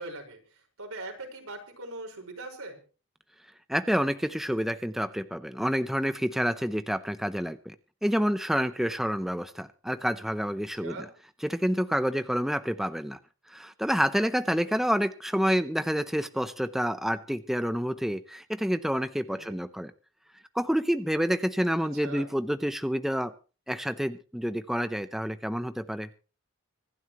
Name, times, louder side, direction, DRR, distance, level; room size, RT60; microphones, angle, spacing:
voice 1, 0.0-2.8 10.8-11.1 14.4-14.8 19.3-19.6 21.8-22.3, right 2 dB, 90° right, 3 dB, 5.1 m, -41 dB
voice 2, 3.7-7.7 8.0-11.0 11.4-13.2 13.5-19.9 20.5-23.3 23.7-26.1, equal, ahead, 10 dB, 0.6 m, -28 dB
25.5 x 11.0 x 3.0 m, 0.35 s
head